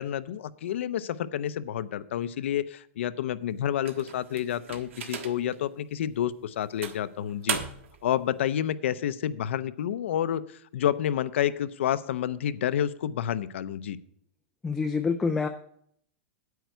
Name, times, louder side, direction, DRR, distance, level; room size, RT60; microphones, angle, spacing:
voice 1, 0.0-7.6 8.0-14.0, left 10 dB, 70° left, 15 dB, 0.6 m, -29 dB
sound 1, 3.8-5.6 6.1-6.2 6.8-8.0, right 8 dB, 75° right, 1.4 m, -36 dB
voice 2, 14.6-15.5, left 4 dB, 5° left, 4 dB, 0.3 m, -26 dB
9.3 x 9.2 x 4.6 m, 0.65 s
supercardioid pair, 175°, 7 cm